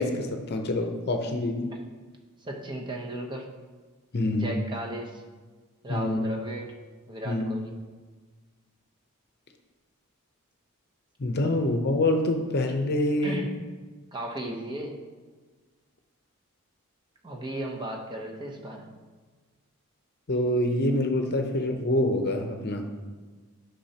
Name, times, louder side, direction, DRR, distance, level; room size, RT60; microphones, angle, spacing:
voice 1, 0.0-1.7 4.1-4.5 5.9-6.2 7.3-7.5 11.2-13.4 20.3-22.8, left 1 dB, 50° left, 5 dB, 0.7 m, -26 dB
voice 2, 2.4-3.5 4.3-5.2 5.8-6.7 7.1-7.7 11.4-11.5 13.2-13.6 14.1-15.1 17.2-18.9, right 1 dB, 20° right, 0 dB, 0.9 m, -35 dB
12.0 x 5.5 x 2.9 m, 1.4 s
head